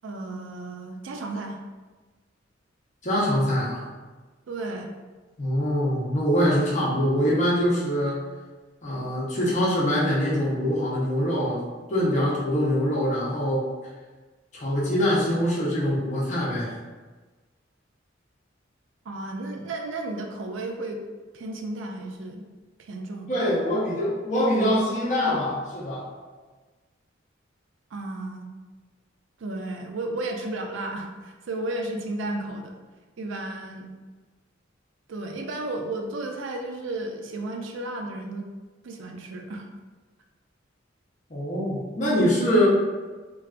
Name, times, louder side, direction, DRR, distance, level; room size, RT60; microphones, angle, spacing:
voice 1, 0.0-1.6 4.5-4.9 19.1-21.0 21.3-22.4 22.8-23.5 27.9-28.5 29.4-32.8 33.2-33.9 35.1-38.4 38.8-39.7, right 2 dB, 70° right, 3 dB, 0.4 m, -33 dB
voice 2, 3.0-3.8 5.4-8.2 8.8-11.6 11.9-13.6 14.5-16.8 23.3-26.0 41.3-42.7, equal, 40° left, -5 dB, 0.8 m, -24 dB
3.2 x 2.5 x 2.4 m, 1.3 s
head